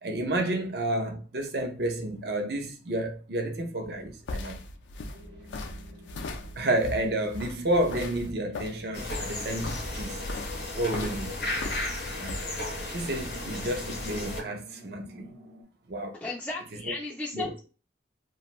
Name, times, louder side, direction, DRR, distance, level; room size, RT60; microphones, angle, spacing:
voice 1, 0.0-4.6 6.6-10.2 10.7-11.3 12.2-12.4 12.9-15.4 15.9-16.2 16.7-16.9 17.3-17.6, right 1 dB, 60° right, 0.5 m, -30 dB
sound 1, 3.8-12.5, left 2 dB, 85° left, 0.4 m, -38 dB
sound 2, 5.1-15.6, equal, 85° right, 0.8 m, -52 dB
sound 3, 8.9-14.4, left 2 dB, 60° left, 0.7 m, -34 dB
voice 2, 16.1-17.6, left 2 dB, 5° left, 0.3 m, -35 dB
2.5 x 2.2 x 2.9 m
head